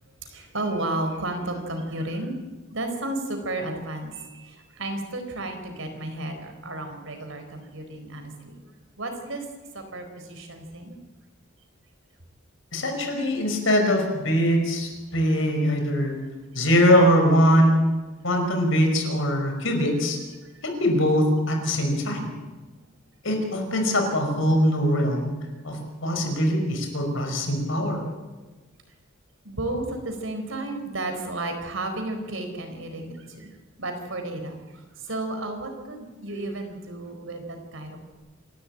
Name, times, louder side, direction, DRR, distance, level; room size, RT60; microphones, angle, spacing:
voice 1, 0.3-2.3 2.7-8.6 9.0-9.4 9.7-11.0 20.4-20.6 29.4-38.1, right 2 dB, 75° right, 5 dB, 4.5 m, -33 dB
voice 2, 12.7-16.1 16.5-17.8 18.2-20.2 20.6-22.3 23.2-25.3 25.6-28.0, equal, 70° left, 3 dB, 5.3 m, -22 dB
27.5 x 12.5 x 8.8 m, 1.2 s
head